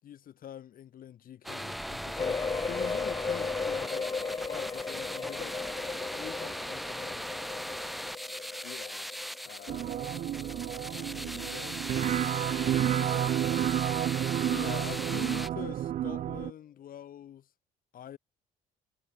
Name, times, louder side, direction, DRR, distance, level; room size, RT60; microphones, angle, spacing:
voice 1, 0.0-4.2 4.5-5.6 6.1-7.3 14.4-17.5 17.9-18.2, left 10 dB, 55° left, 7.7 m, -44 dB
sound 1, 1.4-15.5, equal, ahead, 2.7 m, -39 dB
sound 2, 2.2-11.7 12.1-12.2 12.6-12.7, left 4 dB, 20° left, 0.7 m, -36 dB
voice 2, 4.2-4.5 8.6-9.1 9.4-9.9 10.9-13.3, left 20 dB, 90° left, 6.1 m, -51 dB
sound 3, 9.7-16.5, right 11 dB, 45° right, 0.4 m, -30 dB
cardioid pair, 110°, 17 cm